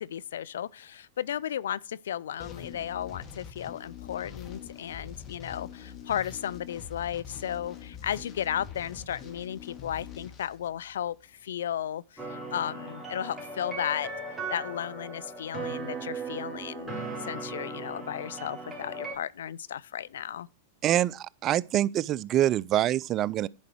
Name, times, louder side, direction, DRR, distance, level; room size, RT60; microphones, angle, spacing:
voice 1, 0.0-14.1 14.5-20.5, left 10 dB, 80° left, 0.3 m, -34 dB
sound 1, 2.4-11.3, left 8 dB, 35° left, 2.1 m, -44 dB
sound 2, 12.2-19.1, right 3 dB, 10° right, 3.6 m, -38 dB
voice 2, 20.8-23.5, right 12 dB, 40° right, 0.4 m, -25 dB
10.5 x 5.0 x 4.5 m
hypercardioid pair, 110°, 0 cm